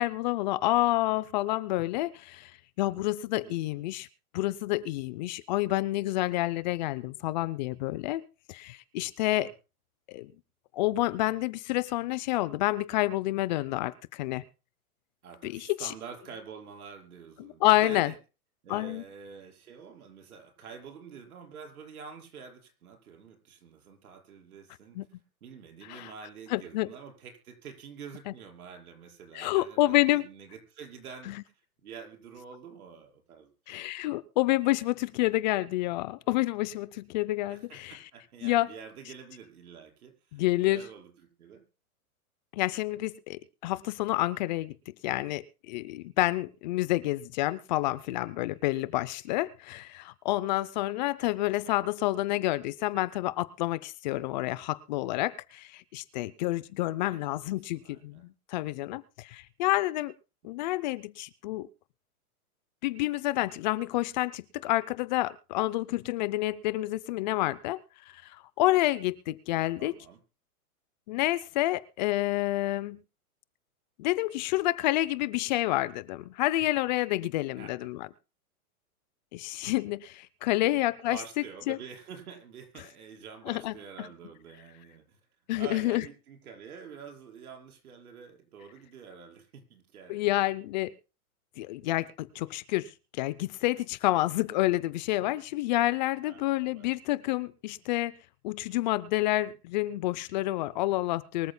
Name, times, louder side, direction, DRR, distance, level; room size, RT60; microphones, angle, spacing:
voice 1, 0.0-2.5 2.8-4.1 4.3-8.2 8.5-9.5 10.1-10.3 10.7-14.4 15.4-15.9 17.4-18.1 18.7-19.0 24.9-25.0 25.9-26.1 26.5-26.9 29.3-30.3 31.3-31.4 33.7-38.0 38.4-38.7 40.3-40.9 42.5-44.7 45.0-60.1 60.4-61.7 62.8-67.8 68.1-69.9 71.1-73.0 74.0-78.1 79.3-81.2 81.7-81.8 83.5-84.1 85.5-86.0 90.1-90.9 91.6-98.1 98.4-101.5, left 17 dB, 30° left, 18 dB, 0.6 m, -29 dB
voice 2, 15.2-18.2 18.6-25.0 25.4-31.3 31.8-33.8 37.4-41.6 57.1-57.4 57.7-58.2 69.8-70.2 77.6-77.7 80.5-80.8 81.1-85.2 85.6-90.3 96.2-96.9, right 6 dB, 75° right, 3 dB, 5.4 m, -47 dB
24.0 x 14.0 x 2.2 m, 0.32 s
hypercardioid pair, 145°, 44 cm